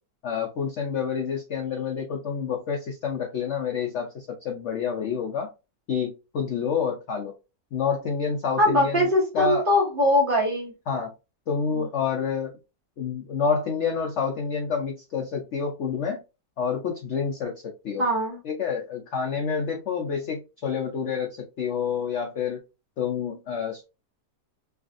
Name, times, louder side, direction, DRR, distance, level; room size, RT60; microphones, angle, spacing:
voice 1, 0.2-5.5 5.9-7.3 7.7-9.1 9.3-9.6 10.9-11.1 11.5-12.5 13.0-16.2 16.6-18.0 18.4-22.6 23.0-23.8, left 6 dB, 70° left, 2 dB, 0.7 m, -28 dB
voice 2, 8.6-10.7 11.7-11.8 18.0-18.4, left 1 dB, 40° right, -3 dB, 1.0 m, -22 dB
3.4 x 2.4 x 2.5 m, 0.28 s
omnidirectional pair, 1.8 m